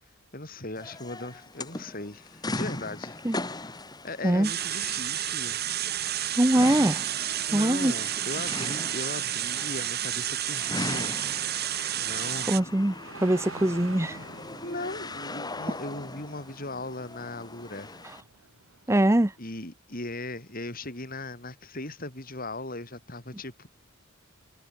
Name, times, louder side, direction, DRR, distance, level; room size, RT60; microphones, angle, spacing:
voice 1, 0.3-3.7 4.0-5.8 6.1-6.3 7.5-11.7 12.0-12.7 14.6-18.0 19.4-23.7, left 2 dB, 45° left, 5.5 m, -38 dB
sound 1, 0.8-18.2, left 2 dB, 20° left, 3.0 m, -40 dB
sound 2, 4.4-12.6, right 11 dB, 50° right, 2.5 m, -31 dB
voice 2, 6.4-7.0 7.5-7.9 12.5-13.0 13.2-14.2 18.9-19.3, right 1 dB, 15° right, 0.7 m, -22 dB
sound 3, 9.3-19.4, right 3 dB, 80° right, 4.5 m, -48 dB
head